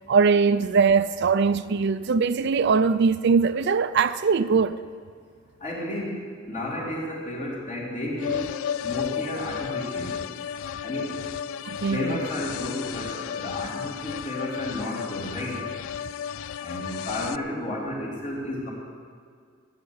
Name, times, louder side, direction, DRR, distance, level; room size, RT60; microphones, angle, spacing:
voice 1, 0.1-4.8 11.6-12.2, right 5 dB, 55° right, 0.4 m, -21 dB
voice 2, 5.6-8.5 8.8-10.2 10.8-11.2 11.9-15.6 16.6-18.7, left 1 dB, 40° left, 4.1 m, -32 dB
sound 1, 8.2-17.4, left 8 dB, 85° left, 0.4 m, -33 dB
16.0 x 8.9 x 8.1 m
head